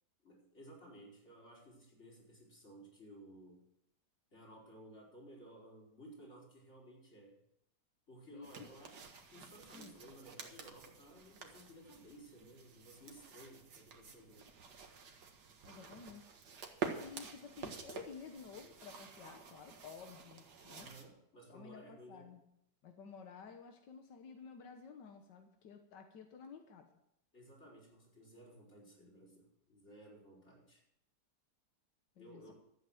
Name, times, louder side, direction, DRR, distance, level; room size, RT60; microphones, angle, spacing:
voice 1, 0.2-3.6 4.3-7.4 8.1-9.0 9.3-14.5 20.7-22.3 27.3-30.8 32.2-32.5, right 1 dB, 40° left, -3 dB, 4.9 m, -57 dB
voice 2, 8.3-8.7 9.7-10.0 15.6-16.3 17.0-20.9 21.5-22.4 22.8-26.9 32.2-32.5, left 6 dB, 90° left, 5 dB, 1.8 m, -53 dB
sound 1, 8.4-21.1, right 5 dB, 70° right, 2.1 m, -49 dB
13.5 x 8.7 x 7.8 m, 0.78 s
omnidirectional pair, 1.8 m